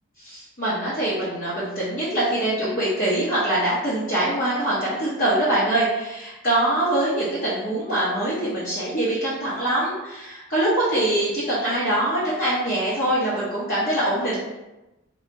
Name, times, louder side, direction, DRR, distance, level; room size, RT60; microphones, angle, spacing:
voice 1, 0.2-14.4, right 1 dB, 40° left, -11 dB, 0.9 m, -23 dB
2.8 x 2.3 x 4.1 m, 1.0 s
head